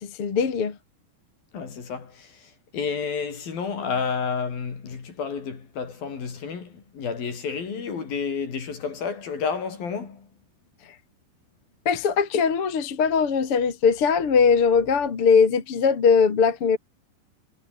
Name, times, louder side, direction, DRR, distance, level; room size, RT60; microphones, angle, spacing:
voice 1, 0.0-0.7 11.8-16.8, left 6 dB, 35° left, 3.0 m, -20 dB
voice 2, 1.5-10.3, left 5 dB, 60° left, 6.1 m, -30 dB
omnidirectional pair, 4.9 m